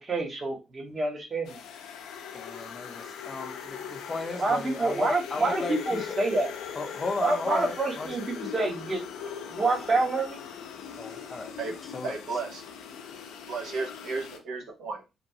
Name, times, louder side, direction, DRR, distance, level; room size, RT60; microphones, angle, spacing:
voice 1, 0.0-1.6 4.4-6.5 7.2-9.0 9.5-10.4, right 2 dB, 35° right, 0.9 m, -27 dB
sound 1, 1.5-14.4, left 7 dB, 90° left, 0.4 m, -40 dB
voice 2, 2.3-6.0 6.8-8.1 11.0-11.5 11.9-12.2, left 3 dB, 35° left, 0.6 m, -35 dB
voice 3, 12.0-12.6 13.5-15.1, right 4 dB, 75° right, 0.6 m, -34 dB
2.9 x 2.3 x 2.6 m
cardioid pair, 90°, 0 cm